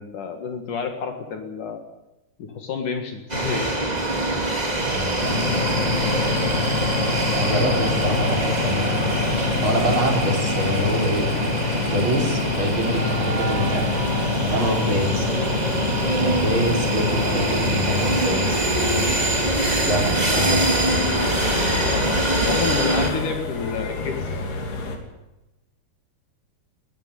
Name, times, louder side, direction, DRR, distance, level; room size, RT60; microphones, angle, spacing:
voice 1, 0.0-1.8 2.4-3.7 14.5-14.9 21.7-24.3, left 5 dB, 60° left, 5 dB, 3.2 m, -30 dB
sound 1, 3.3-23.1, right 2 dB, 15° right, 1.9 m, -24 dB
voice 2, 4.8-5.9 7.3-9.1 9.6-11.3 11.9-13.9 14.5-15.3 16.2-19.0 19.8-21.0, equal, 35° right, 1 dB, 4.3 m, -26 dB
sound 2, 5.2-25.0, left 5 dB, 80° left, 4.9 m, -27 dB
20.5 x 14.0 x 9.7 m, 0.99 s
omnidirectional pair, 4.5 m